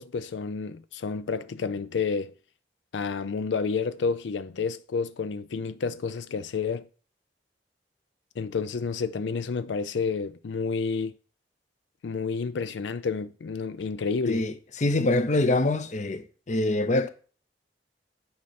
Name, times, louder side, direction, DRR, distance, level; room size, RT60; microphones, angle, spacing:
voice 1, 0.0-2.3 2.9-6.9 8.4-11.1 12.0-14.4, left 5 dB, 90° left, 0.4 m, -30 dB
voice 2, 14.8-17.1, left 2 dB, 40° left, 0.7 m, -24 dB
9.5 x 5.6 x 4.2 m
head